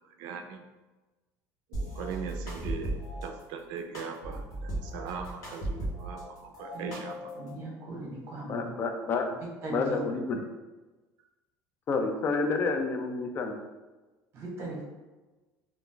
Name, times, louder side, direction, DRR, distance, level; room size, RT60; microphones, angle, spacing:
voice 1, 0.2-0.6 1.7-7.1, right 6 dB, 70° right, 5 dB, 0.4 m, -40 dB
sound 1, 1.7-3.3 3.9-6.2 6.5-7.5, right 1 dB, 50° left, 0.9 m, -36 dB
voice 2, 7.3-8.7 9.6-10.0 14.3-14.8, right 2 dB, 35° right, -3 dB, 0.9 m, -38 dB
voice 3, 8.5-9.3 9.7-10.4 11.9-13.5, left 4 dB, 30° left, 4 dB, 0.3 m, -29 dB
2.4 x 2.2 x 3.6 m, 1.2 s
cardioid pair, 160°, 7 cm